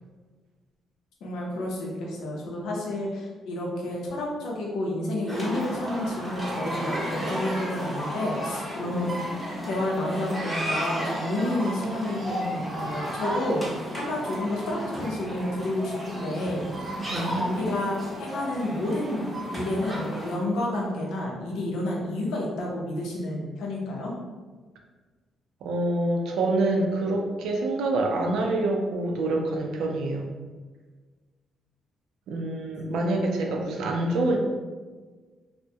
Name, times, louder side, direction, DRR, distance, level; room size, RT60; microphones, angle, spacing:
voice 1, 1.2-9.2 9.6-16.7 17.4-24.1, left 1 dB, 80° left, -2 dB, 0.6 m, -30 dB
sound 1, 5.3-20.4, equal, 5° right, 0.8 m, -33 dB
voice 2, 17.0-17.5 25.6-30.2 32.3-34.4, right 2 dB, 80° right, 2 dB, 0.4 m, -26 dB
2.3 x 2.1 x 2.7 m, 1.4 s
cardioid pair, 90°, 0 cm